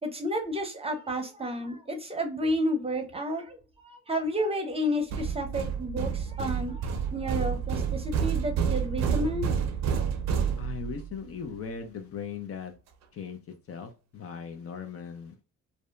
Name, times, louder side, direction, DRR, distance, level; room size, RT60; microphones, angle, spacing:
voice 1, 0.0-9.5, equal, 20° right, 0.7 m, -31 dB
sound 1, 5.1-11.1, right 7 dB, 65° right, 0.6 m, -29 dB
voice 2, 10.6-12.7 13.1-15.3, left 6 dB, 50° left, 0.6 m, -39 dB
2.7 x 2.1 x 2.3 m
cardioid pair, 90°, 30 cm